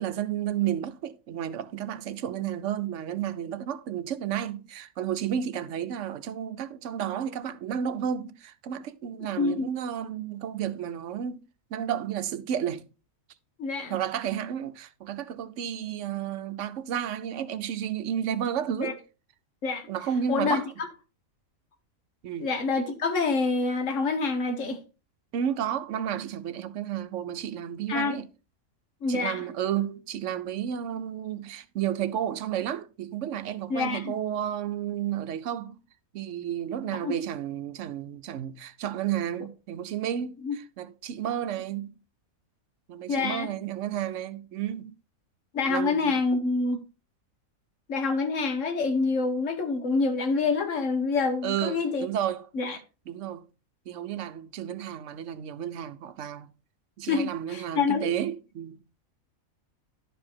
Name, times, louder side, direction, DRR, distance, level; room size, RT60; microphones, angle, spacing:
voice 1, 0.0-11.5 11.7-12.8 13.9-19.0 19.9-20.7 22.2-22.5 25.3-28.3 29.1-35.8 36.1-41.9 42.9-45.0 45.7-46.1 51.4-52.8 53.1-53.5 53.9-56.5 57.0-58.8, right 9 dB, 65° right, 1.0 m, -32 dB
voice 2, 9.4-9.7 13.6-14.0 18.8-18.9 19.6-19.9 20.3-20.6 22.4-24.8 27.9-28.2 29.0-29.4 33.7-34.1 37.0-37.2 40.4-40.6 43.1-43.5 45.5-46.8 47.9-52.1 52.5-52.8 57.0-58.1, left 4 dB, 65° left, 1.6 m, -27 dB
11.0 x 4.8 x 4.3 m
omnidirectional pair, 1.5 m